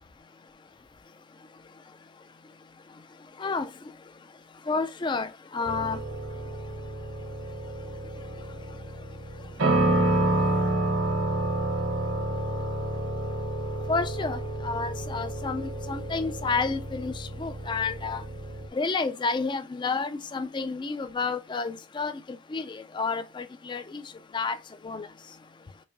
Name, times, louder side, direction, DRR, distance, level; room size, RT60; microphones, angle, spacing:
voice 1, 3.4-3.7 4.7-6.0 13.9-18.2 18.7-22.2 22.5-24.0 24.3-24.6 24.8-25.1, left 4 dB, 25° left, 0.3 m, -30 dB
sound 1, 5.6-18.7, right 1 dB, 70° right, 0.8 m, -29 dB
4.8 x 2.5 x 2.5 m
head